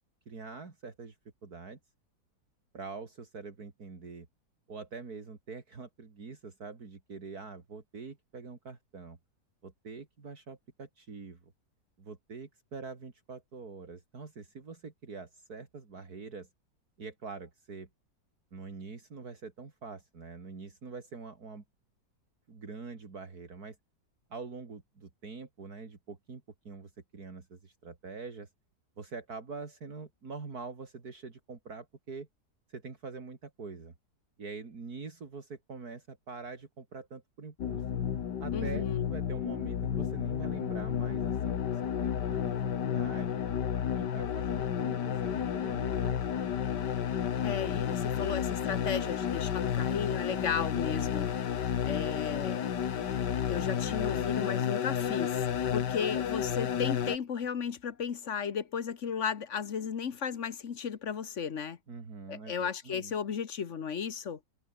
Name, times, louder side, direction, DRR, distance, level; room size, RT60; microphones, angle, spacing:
voice 1, 0.3-1.2 1.4-1.8 2.7-4.3 4.7-9.2 9.6-11.5 12.0-16.5 17.0-17.9 18.5-21.6 22.5-23.8 24.3-28.5 29.0-32.3 32.7-33.9 34.4-37.8 38.4-43.5 43.9-46.5 61.9-63.1, right 4 dB, 65° right, 3.3 m, -45 dB
sound 1, 37.6-57.2, left 8 dB, 85° left, 2.0 m, -31 dB
voice 2, 38.5-39.1 47.4-51.3 51.8-52.7 53.5-61.8 62.3-64.4, left 7 dB, 50° left, 1.4 m, -35 dB
omnidirectional pair, 1.8 m